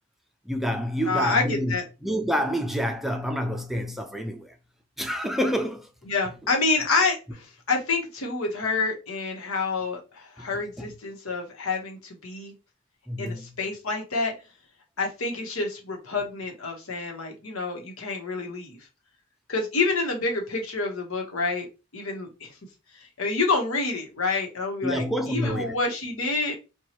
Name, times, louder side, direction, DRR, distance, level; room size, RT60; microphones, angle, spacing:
voice 1, 0.5-1.7 2.0-4.6 5.0-5.9 10.4-10.5 10.8-10.9 13.1-13.6 24.8-25.7, equal, ahead, 0.4 m, -28 dB
voice 2, 1.0-1.8 6.1-12.5 13.2-14.3 15.0-18.8 19.5-21.7 21.9-22.5 22.9-26.6, left 3 dB, 90° left, 1.1 m, -28 dB
4.5 x 2.3 x 2.9 m
head